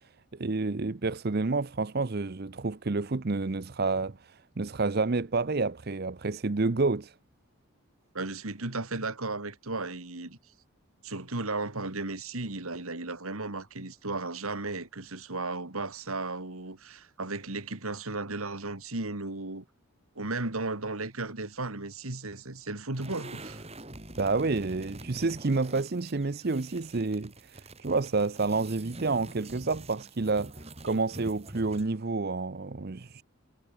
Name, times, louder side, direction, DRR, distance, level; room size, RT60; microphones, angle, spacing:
voice 1, 0.4-7.1 24.2-33.2, right 3 dB, 45° right, 0.7 m, -29 dB
voice 2, 8.1-10.4 11.0-19.6 20.2-23.6, right 3 dB, 75° right, 2.5 m, -35 dB
sound 1, 22.9-32.0, right 1 dB, 30° right, 6.2 m, -46 dB
head